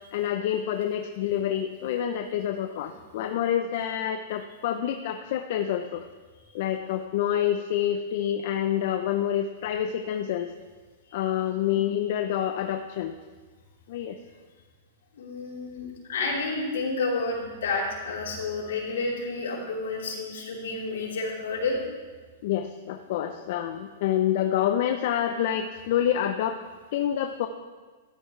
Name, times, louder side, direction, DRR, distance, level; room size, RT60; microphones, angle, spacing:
voice 1, 0.1-6.0 6.5-10.5 11.1-13.1 13.9-14.2 22.4-26.6 26.9-27.5, left 10 dB, 60° left, 6 dB, 0.7 m, -27 dB
voice 2, 15.1-21.8, left 3 dB, 80° left, -4 dB, 4.0 m, -30 dB
15.5 x 12.5 x 3.4 m, 1.4 s
hypercardioid pair, 125°, 0 cm